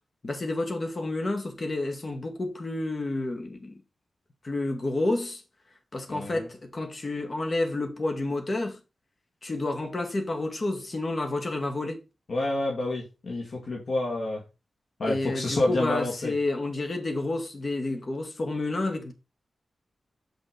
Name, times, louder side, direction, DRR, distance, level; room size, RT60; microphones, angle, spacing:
voice 1, 0.2-3.8 4.4-5.4 5.9-8.8 9.4-12.0 15.1-19.1, left 2 dB, 45° left, 2.1 m, -30 dB
voice 2, 6.1-6.4 12.3-14.4 15.0-16.3, left 2 dB, 65° left, 2.4 m, -28 dB
5.9 x 5.7 x 5.6 m
wide cardioid pair, 85°, 0 cm